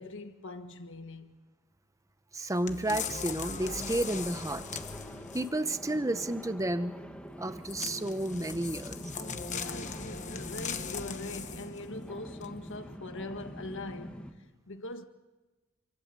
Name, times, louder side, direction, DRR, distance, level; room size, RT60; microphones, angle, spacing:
voice 1, 0.0-1.3 9.5-14.3 14.7-15.1, left 2 dB, 60° left, 1.6 m, -42 dB
voice 2, 2.3-4.7 5.3-6.9 7.4-9.1, right 1 dB, 15° right, 1.1 m, -31 dB
sound 1, 2.7-5.7 7.7-11.8 12.4-12.5, left 5 dB, 35° left, 1.2 m, -39 dB
sound 2, 3.6-14.3, equal, 5° left, 1.9 m, -45 dB
28.5 x 24.0 x 7.7 m
head